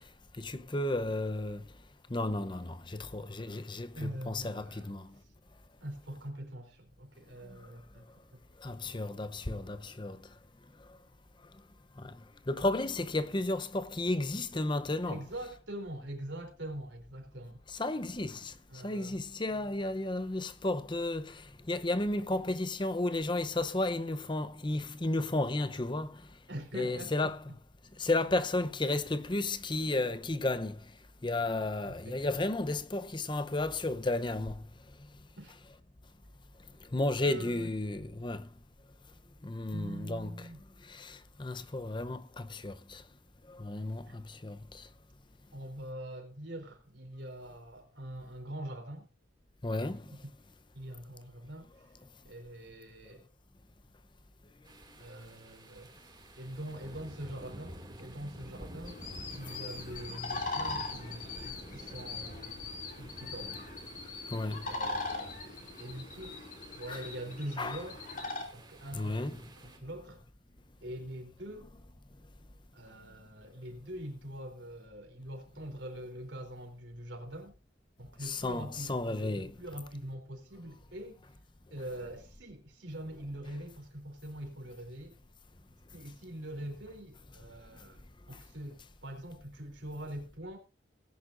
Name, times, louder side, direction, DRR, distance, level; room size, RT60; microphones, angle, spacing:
voice 1, 0.4-1.6 2.1-5.1 8.6-10.2 12.0-12.1 12.5-15.2 17.7-18.5 18.8-21.4 21.7-26.1 26.7-27.4 28.0-30.8 31.2-34.6 36.9-38.4 39.4-40.5 40.9-43.0 43.6-44.6 49.6-50.0 64.3-64.6 66.9-67.0 67.6-67.8 68.9-69.4 78.2-79.5, left 2 dB, 25° left, 0.7 m, -33 dB
voice 2, 3.9-4.9 5.2-5.3 5.8-8.1 8.3-8.4 15.1-17.6 18.7-19.2 26.5-27.6 31.8-32.4 35.4-35.6 37.2-37.7 39.7-40.6 44.1-44.2 45.5-49.1 50.0-50.4 50.7-51.7 52.2-53.3 55.0-56.1 56.4-59.0 59.4-62.6 63.0-63.6 64.6-66.4 66.7-68.0 68.5-70.3 70.8-71.7 72.7-77.5 78.0-81.2 81.7-85.2 85.9-90.6, right 1 dB, 75° right, 3.5 m, -44 dB
sound 1, 54.7-69.8, right 1 dB, 25° right, 2.3 m, -50 dB
sound 2, 58.9-68.4, left 3 dB, 45° left, 2.7 m, -40 dB
19.0 x 10.0 x 2.6 m
head